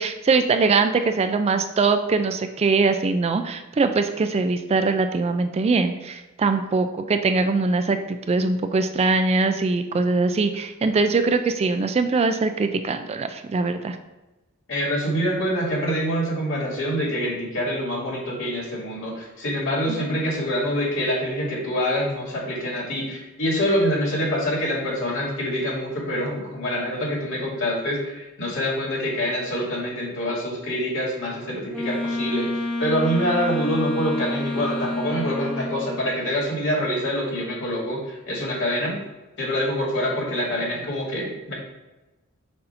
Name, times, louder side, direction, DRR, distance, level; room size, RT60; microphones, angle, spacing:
voice 1, 0.0-14.0 19.9-20.2, right 4 dB, 30° right, 8 dB, 0.3 m, -22 dB
voice 2, 14.7-32.5 32.8-39.0 39.4-41.5, equal, 65° left, -3 dB, 2.1 m, -25 dB
Wind instrument woodwind instrument, 31.7-36.0, left 2 dB, 5° left, 1.0 m, -29 dB
6.6 x 2.7 x 5.6 m, 1.1 s
head